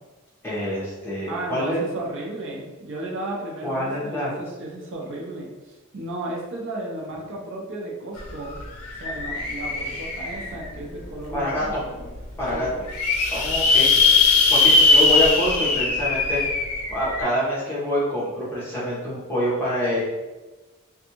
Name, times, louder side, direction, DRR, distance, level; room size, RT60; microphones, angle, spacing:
voice 1, 0.4-1.8 3.6-4.3 11.3-11.6 12.4-12.7 13.3-20.0, left 1 dB, 10° left, -9 dB, 0.9 m, -26 dB
voice 2, 1.3-8.6 9.0-11.9 12.5-12.7, right 1 dB, 60° right, -3 dB, 0.5 m, -34 dB
sound 1, 8.2-8.3 8.5-10.7 11.3-11.4 11.7-11.8 12.0-12.1 12.6-17.2, left 3 dB, 85° left, 0.5 m, -20 dB
2.5 x 2.2 x 2.8 m, 1.2 s
head